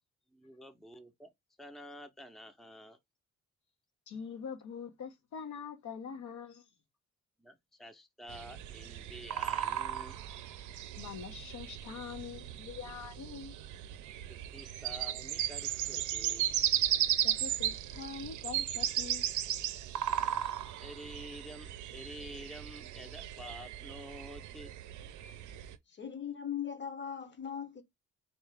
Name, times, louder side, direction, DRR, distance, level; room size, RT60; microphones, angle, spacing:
voice 1, 0.3-1.3 1.6-3.0 7.4-10.2 14.3-16.5 20.0-24.7, equal, ahead, 0.6 m, -49 dB
voice 2, 4.1-6.6 11.0-13.6 17.2-19.3, left 6 dB, 75° left, 1.0 m, -44 dB
sound 1, 8.3-25.8, right 11 dB, 75° right, 0.5 m, -36 dB
voice 3, 25.9-27.8, left 8 dB, 35° left, 0.9 m, -39 dB
4.3 x 2.4 x 3.4 m
cardioid pair, 90°, 30 cm